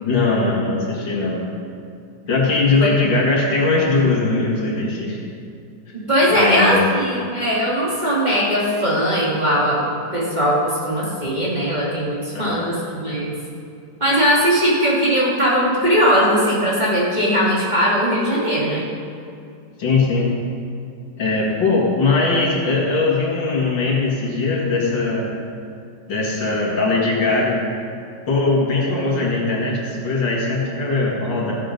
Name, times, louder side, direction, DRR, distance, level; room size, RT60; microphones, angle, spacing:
voice 1, 0.0-1.4 2.3-5.2 6.3-6.8 12.3-12.7 19.8-20.3 21.2-25.3 26.1-27.6 28.3-31.5, left 3 dB, 70° left, -3 dB, 2.7 m, -20 dB
voice 2, 6.1-9.8 10.1-13.3 14.0-18.9, equal, 20° right, -7 dB, 2.4 m, -19 dB
15.0 x 7.5 x 5.3 m, 2.5 s
omnidirectional pair, 2.1 m